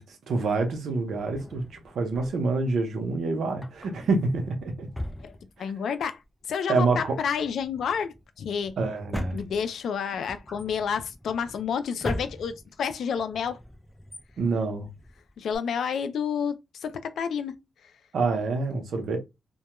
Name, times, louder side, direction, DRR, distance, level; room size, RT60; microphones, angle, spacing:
voice 1, 0.0-4.9 6.7-7.1 8.8-9.4 14.4-14.9 18.1-19.2, right 3 dB, 75° right, 0.7 m, -27 dB
Drawer open or close, 1.1-2.6 3.5-6.0 6.2-6.3 6.8-15.6, left 1 dB, 10° left, 0.4 m, -40 dB
voice 2, 5.6-6.2 6.5-8.7 9.3-13.6 15.4-17.6 17.8-17.9, left 7 dB, 75° left, 0.4 m, -30 dB
2.2 x 2.1 x 2.9 m
wide cardioid pair, 120°, 0 cm